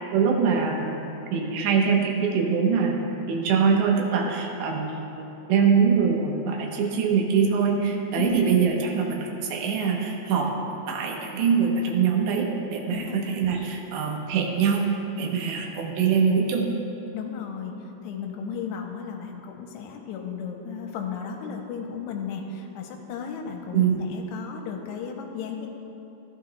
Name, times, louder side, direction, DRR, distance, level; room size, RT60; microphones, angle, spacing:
voice 1, 0.1-1.0 1.3-14.9 15.2-16.7 23.7-24.0, right 6 dB, 90° right, 1 dB, 3.2 m, -23 dB
voice 2, 17.1-25.7, left 7 dB, 90° left, 2 dB, 2.9 m, -34 dB
15.0 x 11.5 x 2.3 m, 2.9 s
omnidirectional pair, 4.9 m